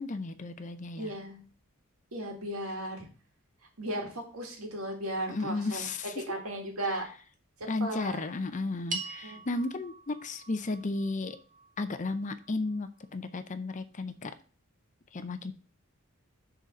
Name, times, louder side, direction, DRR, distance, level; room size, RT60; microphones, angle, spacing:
voice 1, 0.0-1.1 5.3-6.4 7.7-11.4 11.8-14.3 15.1-15.5, left 3 dB, 35° left, 11 dB, 0.6 m, -34 dB
voice 2, 1.0-1.4 2.1-3.1 3.8-5.9 6.3-7.1 7.8-8.2 9.2-9.4, right 1 dB, 85° right, 2 dB, 2.1 m, -35 dB
sound 1, 8.9-13.4, right 4 dB, 35° right, 1.2 m, -44 dB
6.7 x 3.9 x 6.2 m, 0.38 s
head